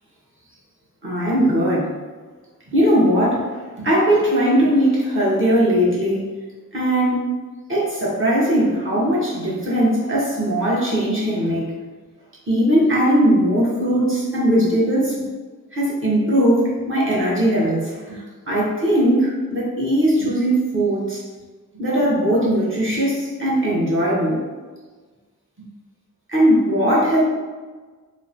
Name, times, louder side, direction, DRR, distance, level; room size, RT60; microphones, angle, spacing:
voice 1, 1.0-1.9 2.7-6.3 6.7-7.2 7.7-11.8 12.5-15.1 15.7-18.2 18.5-21.2 21.7-24.4 26.3-27.2, equal, 35° right, -7 dB, 0.8 m, -19 dB
2.9 x 2.0 x 2.5 m, 1.4 s
wide cardioid pair, 75°, 35 cm